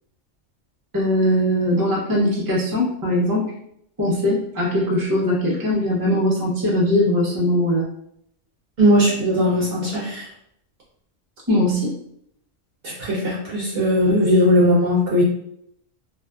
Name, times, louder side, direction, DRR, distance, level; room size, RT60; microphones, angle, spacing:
voice 1, 0.9-3.5 4.0-7.9 11.5-11.9, left 1 dB, 20° right, -4 dB, 0.6 m, -20 dB
voice 2, 8.8-10.3 12.8-15.2, equal, 60° right, -5 dB, 0.7 m, -18 dB
2.6 x 2.4 x 2.2 m, 0.73 s
omnidirectional pair, 1.3 m